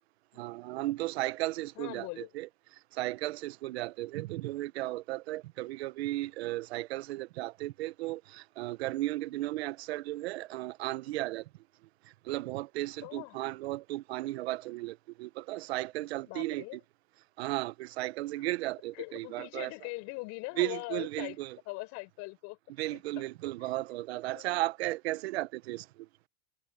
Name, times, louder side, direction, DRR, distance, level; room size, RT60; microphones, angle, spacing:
voice 1, 0.4-2.5 2.9-11.5 12.0-16.6 17.4-19.7 20.6-21.6 22.8-26.1, right 18 dB, 90° right, 0.7 m, -35 dB
voice 2, 1.7-2.3 13.0-13.4 16.3-16.8 18.4-18.5 18.9-21.4 21.7-22.6 22.9-23.2 23.6-23.8 24.3-24.6, left 26 dB, 60° left, 5.7 m, -41 dB
supercardioid pair, 130°, 31 cm